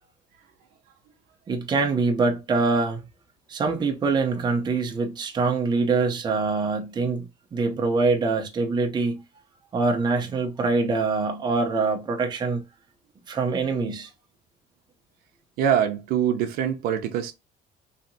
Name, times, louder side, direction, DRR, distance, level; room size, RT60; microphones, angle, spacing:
voice 1, 1.5-3.0 3.5-9.2 9.7-12.6 13.3-14.1, right 4 dB, 25° right, 0.7 m, -24 dB
voice 2, 15.6-17.3, right 9 dB, 80° right, 0.6 m, -24 dB
3.2 x 2.9 x 2.7 m
cardioid pair, 140°, 16 cm